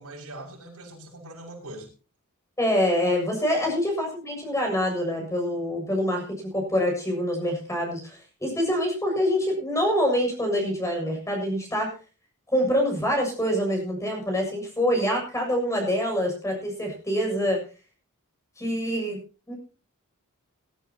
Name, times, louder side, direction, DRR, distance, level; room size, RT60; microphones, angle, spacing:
voice 1, 0.0-1.9 3.4-3.7, right 1 dB, 80° right, 0 dB, 6.2 m, -42 dB
voice 2, 2.6-11.9 12.5-17.6 18.6-19.2 19.5-19.6, equal, 15° left, 2 dB, 6.9 m, -25 dB
21.0 x 12.5 x 2.9 m, 0.35 s
head